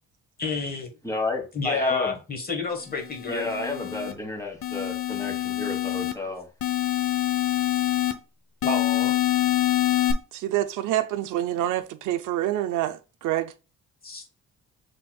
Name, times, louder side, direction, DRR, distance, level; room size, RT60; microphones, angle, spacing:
voice 1, 0.4-0.9 1.5-3.5 8.6-9.1 14.0-14.2, left 4 dB, 30° left, 1.3 m, -29 dB
voice 2, 1.0-2.2 3.3-6.5, left 2 dB, 10° left, 1.5 m, -31 dB
sound 1, 3.0-4.1 4.6-6.1 6.6-8.1 8.6-10.1, left 14 dB, 50° left, 0.7 m, -25 dB
voice 3, 10.3-13.5, right 13 dB, 80° right, 0.5 m, -27 dB
5.9 x 3.4 x 2.3 m
cardioid pair, 90°, 30 cm